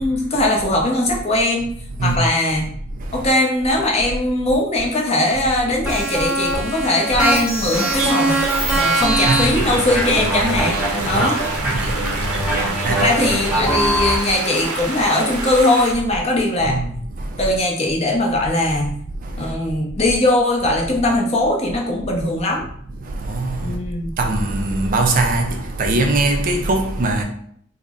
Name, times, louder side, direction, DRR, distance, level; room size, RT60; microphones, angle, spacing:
voice 1, 0.0-1.7 2.0-2.7 3.1-8.4 8.7-11.4 12.4-16.8 17.4-18.9 19.4-22.6 23.6-24.1, left 1 dB, 30° left, 0.6 m, -20 dB
voice 2, 2.9-3.3 8.6-8.8 9.2-9.7 11.1-11.3 11.6-12.6 12.8-13.1 16.6-17.5 19.2-19.5 23.0-23.8 24.2-27.2, right 2 dB, 40° right, 0.3 m, -22 dB
sound 1, 5.8-14.1, right 1 dB, 5° right, 0.8 m, -22 dB
sound 2, 7.7-15.9, right 3 dB, 85° right, 0.6 m, -28 dB
3.8 x 2.0 x 3.5 m
head